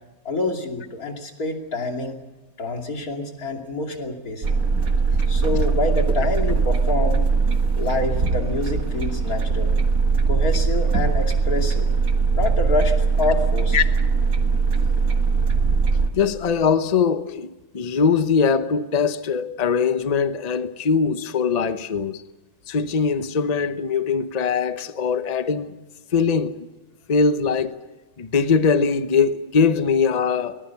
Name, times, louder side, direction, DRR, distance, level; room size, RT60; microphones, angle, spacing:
voice 1, 0.2-2.2 2.6-4.6 5.3-7.3 7.8-9.7 10.3-11.9 12.3-13.8, left 2 dB, 45° left, 3.1 m, -27 dB
sound 1, 4.4-16.1, right 4 dB, 45° right, 2.1 m, -20 dB
voice 2, 16.1-22.2 22.7-25.8 26.1-26.7 27.1-27.8 28.2-30.6, left 5 dB, 60° left, 0.4 m, -21 dB
23.0 x 20.0 x 7.1 m
omnidirectional pair, 2.3 m